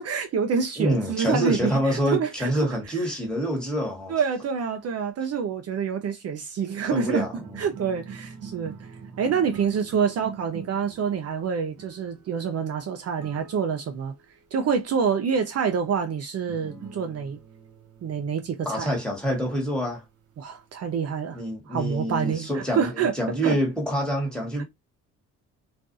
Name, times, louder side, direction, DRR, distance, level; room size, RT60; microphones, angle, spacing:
voice 1, 0.0-2.5 4.1-7.3 7.6-8.9 9.2-14.1 14.5-17.4 18.0-18.9 20.4-21.4 21.7-23.2 23.4-23.5 24.6-24.7, right 6 dB, 55° right, 0.6 m, -27 dB
voice 2, 0.8-4.2 6.9-7.7 18.6-20.0 21.3-24.6, equal, 5° left, 1.4 m, -26 dB
sound 1, 6.9-14.2 16.5-20.5, right 6 dB, 80° right, 1.1 m, -44 dB
2.5 x 2.3 x 2.5 m
cardioid pair, 90°, 30 cm